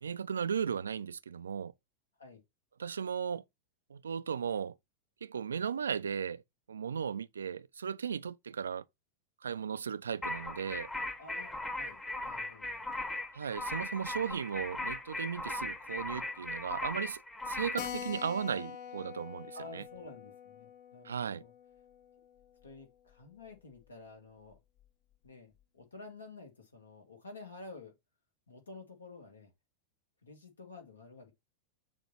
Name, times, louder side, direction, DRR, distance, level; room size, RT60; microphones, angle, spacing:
voice 1, 0.0-1.7 2.8-3.4 3.9-4.7 5.2-6.4 6.7-8.8 9.4-10.9 13.3-17.2 17.5-19.8 21.0-21.4, right 7 dB, 70° right, 0.3 m, -36 dB
sound 1, 10.2-17.9, left 2 dB, 15° left, 1.0 m, -38 dB
voice 2, 11.2-13.1 19.5-21.5 22.6-24.6 25.2-27.9 28.5-29.5 30.2-31.3, left 3 dB, 75° left, 1.8 m, -51 dB
Keyboard (musical), 17.8-22.8 23.1-23.2 23.5-23.6 23.8-23.9 24.5-24.8, left 8 dB, 40° left, 0.8 m, -45 dB
6.3 x 2.7 x 5.5 m
figure-of-eight pair, 90°, 0 cm